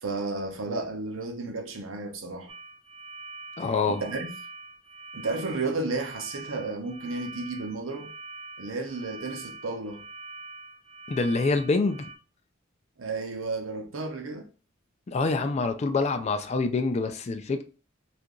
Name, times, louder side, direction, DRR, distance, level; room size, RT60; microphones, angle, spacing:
voice 1, 0.0-2.5 3.9-4.3 5.1-8.1 8.6-10.0 13.0-14.5, right 3 dB, 75° right, 0.7 m, -32 dB
sound 1, 2.5-12.1, right 3 dB, 25° right, 0.5 m, -44 dB
voice 2, 3.6-4.0 11.1-12.1 15.1-17.6, left 3 dB, 35° left, 0.4 m, -26 dB
2.8 x 2.5 x 3.6 m
head